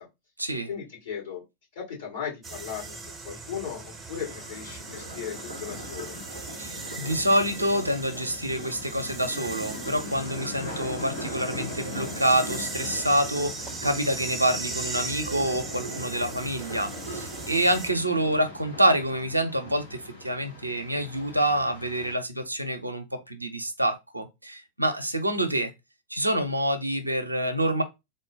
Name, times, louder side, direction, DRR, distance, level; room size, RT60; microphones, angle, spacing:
voice 1, 0.7-1.4 1.7-6.1, left 7 dB, 60° left, 2.5 m, -37 dB
sound 1, 2.4-17.9, right 3 dB, 15° right, 0.6 m, -39 dB
sound 2, 4.2-22.1, left 1 dB, 80° left, 1.5 m, -40 dB
voice 2, 6.6-25.7 26.1-27.8, right 1 dB, 85° right, 0.6 m, -27 dB
3.7 x 2.1 x 3.7 m
figure-of-eight pair, 90°, 0 cm